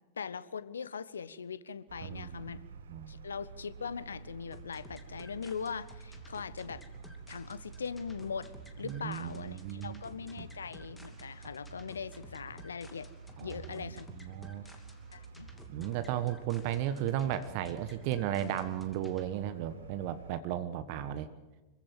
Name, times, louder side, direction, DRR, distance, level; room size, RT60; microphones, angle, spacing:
voice 1, 0.2-2.6 3.1-6.8 7.3-8.5 8.8-13.1 13.4-14.1 14.7-14.8 15.1-15.5, left 6 dB, 70° left, 17 dB, 0.9 m, -41 dB
sound 1, 1.9-20.4, right 5 dB, 65° right, 1.5 m, -50 dB
voice 2, 2.0-2.6 2.9-3.1 8.8-10.0 10.4-10.5 13.4-13.9 14.2-14.6 15.7-21.3, right 11 dB, 45° right, 12 dB, 1.3 m, -35 dB
sound 2, 4.5-19.3, left 2 dB, 10° left, 2.6 m, -55 dB
25.5 x 15.5 x 7.8 m, 1.1 s
figure-of-eight pair, 90°, 0 cm